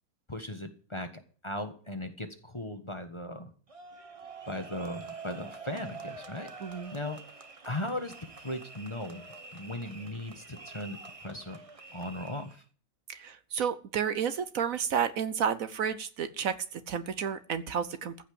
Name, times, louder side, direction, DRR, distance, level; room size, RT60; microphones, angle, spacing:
voice 1, 0.3-1.1 1.4-3.5 4.5-6.5 6.9-7.2 7.6-9.3 9.5-11.6 11.9-12.6, left 1 dB, 20° left, 7 dB, 1.4 m, -37 dB
sound 1, 3.7-12.6, right 3 dB, 25° right, 1.0 m, -47 dB
voice 2, 6.6-7.0 13.1-18.2, right 7 dB, 65° right, 13 dB, 1.2 m, -31 dB
15.0 x 5.8 x 8.5 m, 0.42 s
omnidirectional pair, 1.6 m